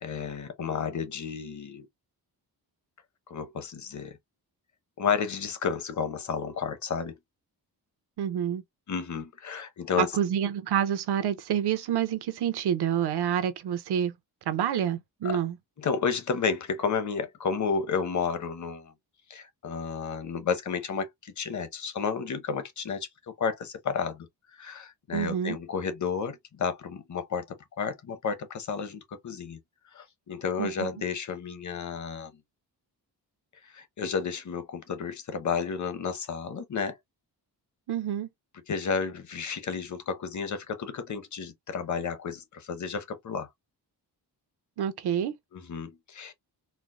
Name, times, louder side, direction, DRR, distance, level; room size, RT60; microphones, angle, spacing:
voice 1, 0.0-1.9 3.3-4.2 5.0-7.1 8.9-10.1 15.2-15.4 15.8-18.9 19.3-23.1 23.4-24.3 24.6-27.4 27.8-29.6 29.9-32.3 33.7-37.0 38.7-43.5 45.5-46.3, left 6 dB, 50° left, 0.8 m, -31 dB
voice 2, 8.2-8.6 10.0-14.1 14.5-15.6 25.1-25.6 30.6-30.9 37.9-38.3 44.8-45.3, right 9 dB, 80° right, 0.7 m, -28 dB
4.3 x 2.0 x 2.5 m
wide cardioid pair, 145°, 39 cm